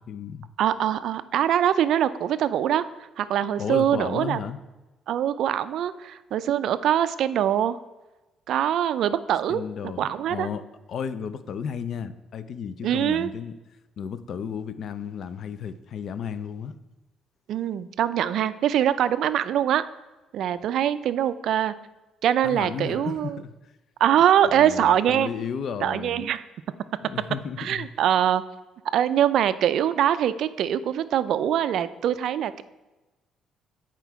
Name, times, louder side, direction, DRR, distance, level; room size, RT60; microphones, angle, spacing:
voice 1, 0.1-0.5 3.6-4.6 9.5-10.6 10.9-13.6 14.0-16.7 22.4-23.7 24.5-26.2 27.0-27.9, left 7 dB, 50° left, 13 dB, 0.4 m, -33 dB
voice 2, 0.6-2.8 3.2-4.4 5.1-7.8 8.5-9.6 10.0-10.5 12.8-13.3 17.5-19.8 20.3-21.7 22.2-23.4 24.0-25.3 25.8-26.4 27.6-28.4 28.9-32.6, right 10 dB, 65° right, 13 dB, 0.3 m, -23 dB
8.0 x 4.4 x 4.6 m, 1.1 s
cardioid pair, 130°, 0 cm